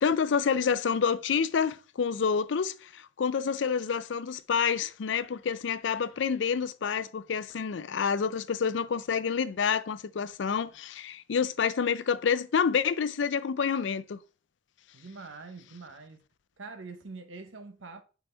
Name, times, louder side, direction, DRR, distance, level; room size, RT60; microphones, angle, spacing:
voice 1, 0.0-14.2, left 6 dB, 70° left, 0.4 m, -28 dB
voice 2, 14.9-16.2 16.6-18.0, right 3 dB, 90° right, 0.9 m, -44 dB
5.4 x 4.1 x 4.4 m
head